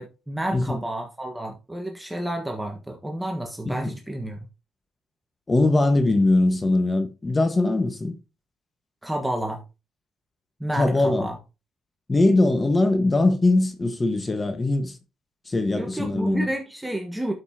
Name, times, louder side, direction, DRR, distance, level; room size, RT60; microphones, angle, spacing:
voice 1, 0.0-4.5 9.0-9.6 10.6-11.4 15.7-17.3, right 1 dB, 5° right, 1.3 m, -30 dB
voice 2, 5.5-8.1 10.8-11.3 12.1-15.0 15.5-16.5, left 2 dB, 25° left, 1.3 m, -21 dB
12.0 x 5.4 x 2.8 m
cardioid pair, 90°, 0 cm